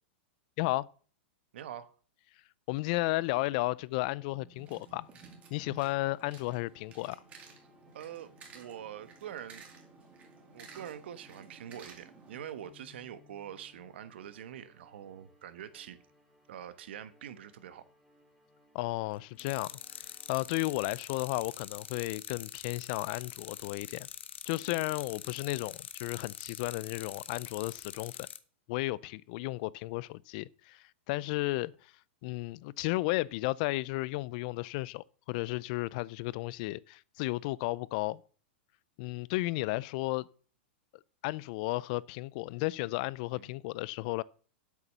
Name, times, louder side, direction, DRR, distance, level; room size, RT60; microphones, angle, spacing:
voice 1, 1.5-1.9 7.9-9.6 10.5-16.0 16.5-17.8 43.3-43.5, right 10 dB, 70° right, 1.3 m, -45 dB
voice 2, 2.7-5.1 5.5-7.2 18.7-19.7 20.0-24.1 24.5-28.3 28.7-31.9 32.2-38.2 39.0-40.3 41.2-44.2, left 20 dB, 45° left, 0.5 m, -33 dB
sound 1, 4.3-21.1, left 1 dB, ahead, 2.5 m, -64 dB
sound 2, 4.5-12.4, right 4 dB, 20° right, 2.5 m, -54 dB
sound 3, 19.4-28.4, left 9 dB, 90° left, 1.0 m, -45 dB
8.2 x 7.2 x 6.7 m
supercardioid pair, 150°, 6 cm